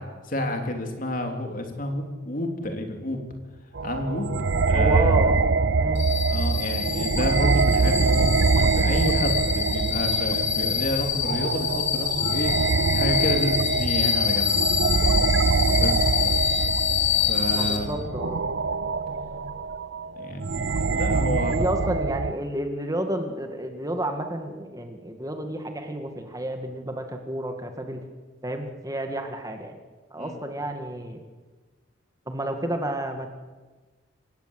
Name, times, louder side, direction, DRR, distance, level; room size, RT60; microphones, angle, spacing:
voice 1, 0.0-3.2 3.8-4.2 4.7-5.1 6.3-12.7 12.9-14.5 15.8-16.1 17.2-18.0 20.2-21.7 30.2-30.4, left 1 dB, 45° left, 4 dB, 3.4 m, -30 dB
sound 1, 3.8-22.3, right 4 dB, 65° right, 0.7 m, -24 dB
voice 2, 4.7-5.4 5.8-6.0 17.5-18.4 21.5-28.0 28.4-29.8 30.1-31.2 32.3-33.3, right 1 dB, 20° right, 5 dB, 2.0 m, -30 dB
sound 2, 5.9-17.8, left 9 dB, 75° left, 3.4 m, -26 dB
27.0 x 16.5 x 8.2 m, 1.3 s
head